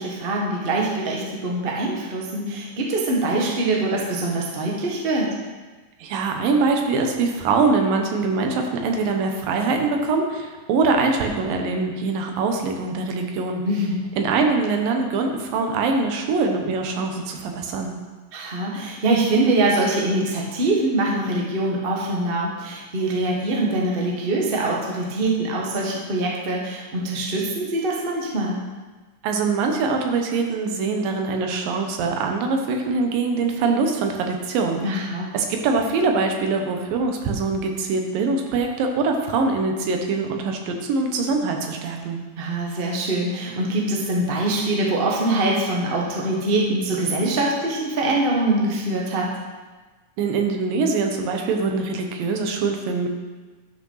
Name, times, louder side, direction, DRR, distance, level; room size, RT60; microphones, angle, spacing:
voice 1, 0.0-5.3 13.6-13.9 18.3-28.6 34.8-35.3 42.4-49.3, right 2 dB, 40° right, -2 dB, 0.8 m, -23 dB
voice 2, 6.0-13.6 14.2-17.9 29.2-34.8 35.3-42.2 50.2-53.1, right 4 dB, 85° right, 3 dB, 2.9 m, -23 dB
11.5 x 6.3 x 5.6 m, 1.3 s
omnidirectional pair, 3.9 m